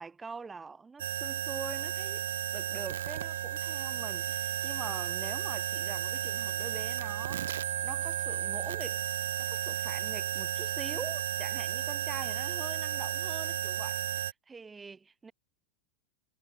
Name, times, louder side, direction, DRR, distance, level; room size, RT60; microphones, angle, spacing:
voice 1, 0.0-2.3 2.5-9.1 9.4-15.3, right 4 dB, 15° right, 3.9 m, -44 dB
sound 1, 1.0-14.3, right 11 dB, 60° right, 1.0 m, -33 dB
figure-of-eight pair, 90°, 0 cm